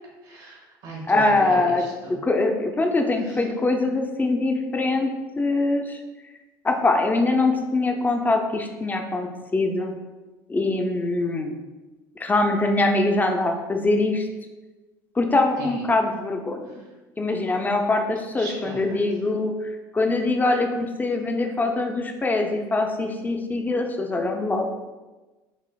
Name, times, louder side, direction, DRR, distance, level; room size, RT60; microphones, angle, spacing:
voice 1, 0.2-2.2 3.3-3.4 15.6-15.8 18.4-19.0, right 2 dB, 65° right, -3 dB, 1.1 m, -36 dB
voice 2, 1.1-1.8 2.2-5.1 5.4-6.0 6.6-10.0 10.5-11.5 12.2-14.3 15.2-16.8 17.2-24.7, left 2 dB, 15° left, 4 dB, 0.4 m, -23 dB
4.0 x 2.5 x 2.3 m, 1.2 s
hypercardioid pair, 75°, 10 cm